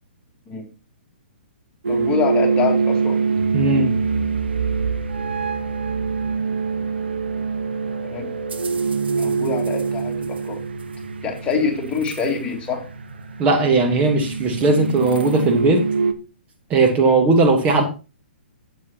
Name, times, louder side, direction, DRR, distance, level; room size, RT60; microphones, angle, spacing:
sound 1, 1.8-16.1, right 5 dB, 70° right, 1.2 m, -24 dB
voice 1, 1.9-3.2 8.0-8.3 9.2-10.6 11.2-12.9, left 5 dB, 20° left, 1 dB, 2.4 m, -25 dB
voice 2, 3.5-3.9 13.4-15.9 16.7-17.8, right 3 dB, 25° right, 3 dB, 1.4 m, -17 dB
12.5 x 7.8 x 2.9 m, 0.32 s
figure-of-eight pair, 120°, 6 cm